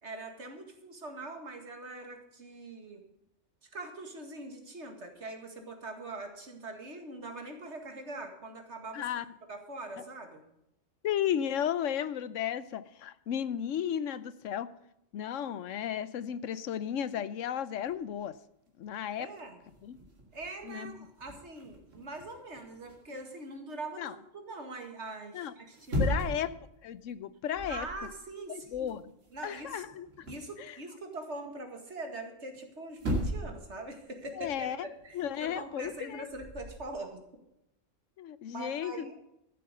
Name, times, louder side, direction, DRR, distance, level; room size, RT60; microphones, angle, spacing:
voice 1, 0.0-3.0 3.6-9.0 9.5-10.4 19.2-19.6 20.3-26.2 27.7-28.9 29.3-29.8 30.3-37.2 38.5-39.2, right 2 dB, 60° right, 4 dB, 2.3 m, -43 dB
voice 2, 8.9-9.2 11.0-14.7 15.1-18.4 18.8-19.3 19.8-20.0 20.6-21.1 24.0-24.1 25.3-25.5 26.0-26.5 26.8-27.9 28.5-29.1 29.4-30.3 30.6-30.8 34.4-34.9 35.1-36.3 38.2-39.3, left 9 dB, 75° left, 16 dB, 1.0 m, -34 dB
sound 1, 17.9-18.2 18.8-18.9 19.2-23.5 25.6-26.6 27.0-27.2 27.5-28.1 28.3-30.5 32.5-32.6 32.9-33.7 33.9-36.8, equal, 75° right, 2.7 m, -38 dB
13.5 x 7.8 x 6.6 m, 0.81 s
omnidirectional pair, 1.3 m